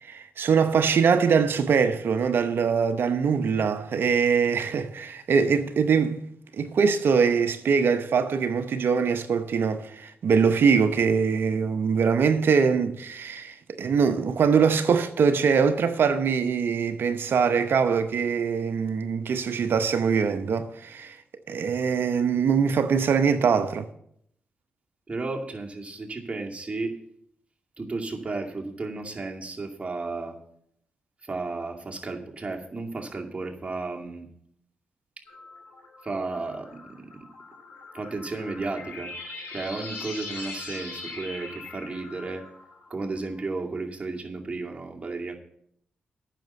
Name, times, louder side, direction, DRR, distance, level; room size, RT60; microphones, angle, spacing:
voice 1, 0.0-6.2 6.5-21.2 21.5-23.9, right 6 dB, 65° right, 0.8 m, -23 dB
voice 2, 25.1-27.0 27.8-30.4 31.2-34.3 36.0-37.1 37.9-39.1 39.5-42.4 42.9-45.4, right 3 dB, 30° right, 2.3 m, -33 dB
sound 1, 35.3-43.4, left 3 dB, 70° left, 5.2 m, -41 dB
9.2 x 6.7 x 8.1 m
supercardioid pair, 45°, 4 cm